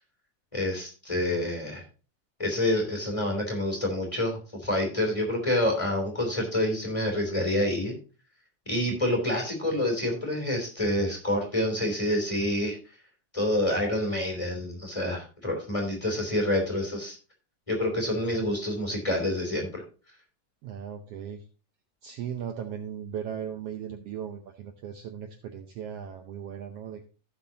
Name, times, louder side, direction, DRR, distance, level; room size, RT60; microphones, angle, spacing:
voice 1, 0.5-1.8 2.4-7.9 8.7-12.8 13.3-17.2 17.7-19.8, left 1 dB, 10° left, 1 dB, 2.6 m, -27 dB
voice 2, 20.6-21.4 22.0-27.0, right 8 dB, 85° right, 5 dB, 1.3 m, -37 dB
16.0 x 6.0 x 2.8 m, 0.36 s
omnidirectional pair, 3.8 m